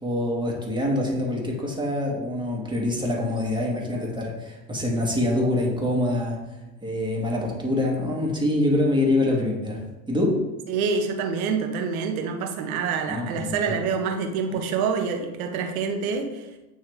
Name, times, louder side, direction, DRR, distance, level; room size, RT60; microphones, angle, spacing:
voice 1, 0.0-6.4 6.8-9.8 10.1-10.4 13.1-13.8 14.5-14.6, left 1 dB, 10° right, -2 dB, 1.8 m, -25 dB
voice 2, 10.7-16.4, right 5 dB, 75° right, 4 dB, 1.0 m, -26 dB
8.9 x 3.2 x 3.4 m, 1.0 s
hypercardioid pair, 75°, 42 cm